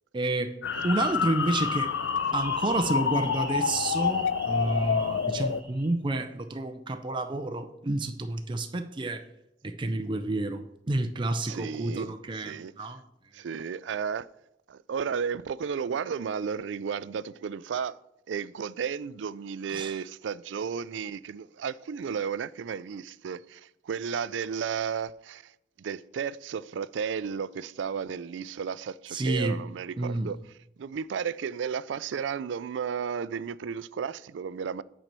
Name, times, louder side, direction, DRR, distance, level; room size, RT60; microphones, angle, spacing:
voice 1, 0.1-0.5 0.8-1.9 2.3-9.2 9.6-13.0 19.7-20.0 29.1-29.6 30.0-30.3, right 2 dB, 25° right, 0.5 m, -29 dB
sound 1, 0.6-5.6, left 7 dB, 80° left, 0.4 m, -28 dB
sound 2, 0.7-5.9, right 2 dB, 10° right, 1.7 m, -42 dB
voice 2, 11.4-12.7 13.3-14.3 14.7-18.0 18.3-25.5 25.8-30.4 30.8-34.8, right 6 dB, 90° right, 0.4 m, -33 dB
8.9 x 4.4 x 6.7 m
head